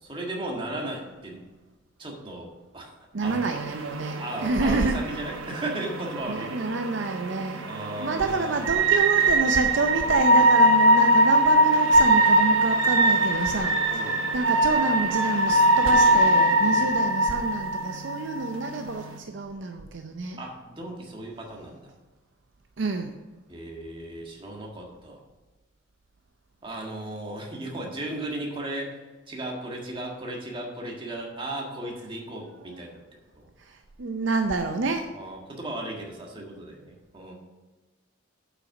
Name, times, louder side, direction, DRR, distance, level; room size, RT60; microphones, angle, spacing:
voice 1, 0.0-1.4 2.0-2.9 3.2-3.4 4.2-6.7 7.7-8.7 13.9-14.2 16.7-16.9 20.4-21.9 23.5-25.2 26.6-29.0 29.3-33.0 33.4-33.5 35.1-37.3, right 1 dB, 25° right, 0 dB, 1.6 m, -36 dB
voice 2, 3.1-5.0 6.3-7.7 8.0-20.4 22.8-23.1 32.6-32.8 33.6-35.1, right 3 dB, 65° right, 5 dB, 0.6 m, -28 dB
sound 1, 3.2-19.2, right 1 dB, 85° right, 1.0 m, -22 dB
8.3 x 5.8 x 5.9 m, 1.2 s
head